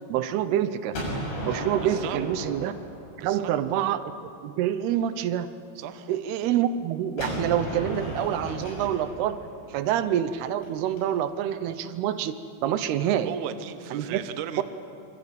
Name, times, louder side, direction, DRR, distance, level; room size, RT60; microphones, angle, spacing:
voice 1, 0.1-1.0 1.4-2.7 3.2-4.1 4.4-5.5 6.1-9.4 9.7-12.3 12.6-13.3 13.9-14.2 14.6-14.7, right 10 dB, 85° right, 12 dB, 3.0 m, -26 dB
Gunshot gunfire, 0.9-3.8 7.2-11.0, equal, 80° left, 8.5 m, -35 dB
voice 2, 1.8-2.2 3.2-3.5 5.8-6.1 13.0-14.6, right 10 dB, 65° right, 10 dB, 2.3 m, -37 dB
26.5 x 24.5 x 8.2 m, 2.5 s
omnidirectional pair, 4.5 m